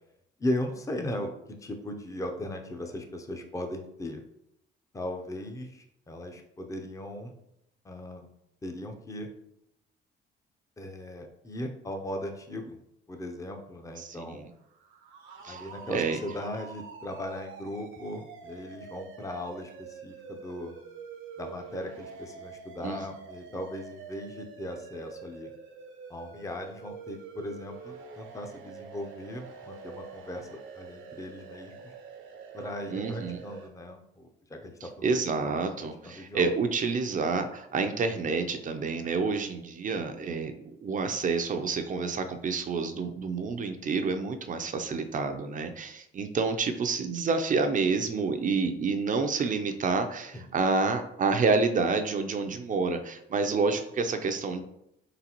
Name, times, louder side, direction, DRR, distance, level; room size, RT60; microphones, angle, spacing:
voice 1, 0.4-4.2 4.9-7.3 7.8-8.3 8.6-9.3 10.8-12.8 13.1-14.5 15.5-20.7 21.4-25.5 26.1-31.9 32.5-35.1 35.4-36.5 43.2-43.5 50.3-50.5, left 1 dB, 15° left, 4 dB, 0.6 m, -38 dB
voice 2, 14.0-14.5 15.4-15.7 15.9-16.2 22.8-23.0 32.9-33.4 35.0-54.6, right 4 dB, 40° right, 6 dB, 0.5 m, -28 dB
sound 1, 14.6-33.7, right 5 dB, 75° right, 0.7 m, -46 dB
3.9 x 3.9 x 2.9 m, 0.79 s
cardioid pair, 90°, 20 cm